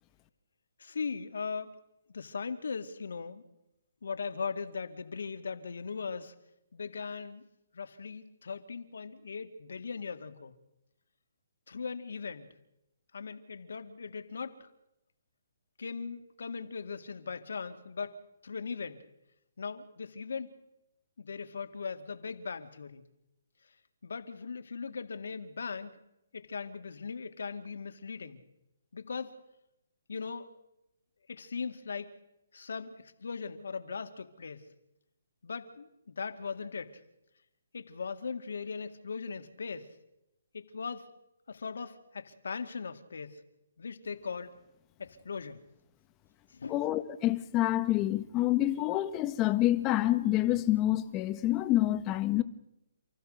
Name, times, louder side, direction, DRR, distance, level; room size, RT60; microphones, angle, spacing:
voice 1, 0.8-1.7 2.1-3.4 4.0-6.3 6.7-7.5 7.7-10.5 11.7-12.5 13.1-14.7 15.8-19.0 19.6-20.6 21.2-23.0 24.0-25.9 26.3-28.4 28.9-29.4 30.1-30.5 31.3-32.2 32.5-34.6 35.4-37.0 37.7-39.9 40.5-41.1 41.5-43.4 43.8-44.5 45.0-45.6 46.5-46.8, left 5 dB, 75° left, 2.3 m, -39 dB
voice 2, 46.7-52.4, left 15 dB, 25° left, 1.4 m, -27 dB
29.0 x 15.0 x 6.6 m
hypercardioid pair, 145°, 0 cm